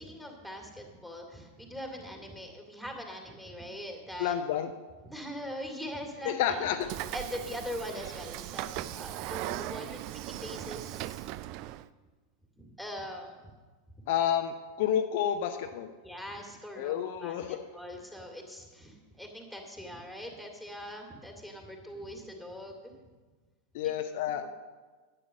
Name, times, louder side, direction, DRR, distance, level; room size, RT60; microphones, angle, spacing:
voice 1, 0.0-4.4 5.0-6.7 7.1-11.3 12.6-13.5 16.0-23.0 24.4-24.5, equal, ahead, 2 dB, 2.4 m, -42 dB
voice 2, 4.2-4.7 6.2-6.9 14.1-15.9 16.8-17.7 23.7-24.5, left 10 dB, 50° left, 7 dB, 0.7 m, -30 dB
Train / Sliding door, 6.8-11.9, right 15 dB, 40° right, 0.4 m, -38 dB
12.0 x 9.0 x 6.3 m, 1.3 s
figure-of-eight pair, 90°, 0 cm